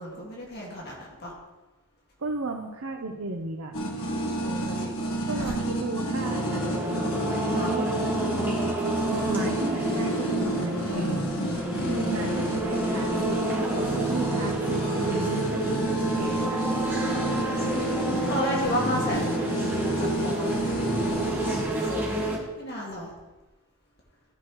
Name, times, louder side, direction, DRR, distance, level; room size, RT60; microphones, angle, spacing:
voice 1, 0.0-1.3 4.4-5.6 7.3-7.8 11.7-12.3 17.1-17.8 18.3-19.5 20.0-20.7 21.6-22.2 22.6-23.1, equal, 50° left, -3 dB, 2.1 m, -33 dB
voice 2, 2.2-3.8 5.3-7.0 7.5-7.9 9.1-11.3 11.9-16.6, right 3 dB, 80° right, 1 dB, 0.7 m, -34 dB
sound 1, 3.7-21.6, right 1 dB, 75° left, 1.5 m, -30 dB
sound 2, 6.2-22.4, right 1 dB, 10° right, 1.4 m, -29 dB
13.5 x 6.1 x 3.1 m, 1.1 s
head